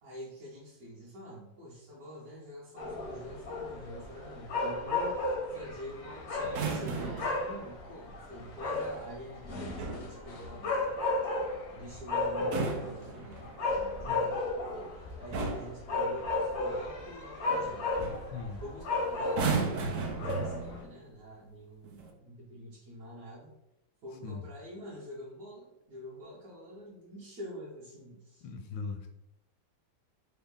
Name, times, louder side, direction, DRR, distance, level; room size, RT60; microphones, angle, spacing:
voice 1, 0.0-10.9 11.7-14.4 14.8-17.9 18.6-23.5 24.0-28.5, equal, 60° right, -8 dB, 1.2 m, -46 dB
sound 1, 2.8-20.8, left 2 dB, 65° left, 0.6 m, -34 dB
sound 2, 6.4-7.4 9.5-10.1 12.3-13.7 14.7-14.9 15.3-15.8 17.5-17.7 18.0-18.3 19.2-20.9 21.8-22.1, right 4 dB, 80° right, 0.7 m, -34 dB
voice 2, 14.0-14.4 18.3-18.6 24.2-24.4 28.4-29.1, left 4 dB, 85° left, 6 dB, 1.2 m, -39 dB
3.4 x 2.2 x 3.6 m, 0.88 s
omnidirectional pair, 2.0 m